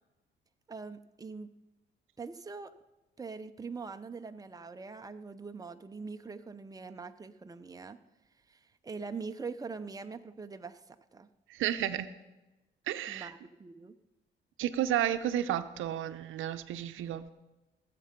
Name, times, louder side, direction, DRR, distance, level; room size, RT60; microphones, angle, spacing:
voice 1, 0.7-1.5 2.2-2.7 3.2-8.0 8.5-11.3 13.1-13.9, right 4 dB, 20° right, 8 dB, 0.8 m, -43 dB
voice 2, 11.5-12.1 12.9-13.3 14.6-17.3, right 11 dB, 85° right, 11 dB, 0.7 m, -32 dB
18.0 x 7.7 x 5.2 m, 1.1 s
cardioid pair, 90°, 20 cm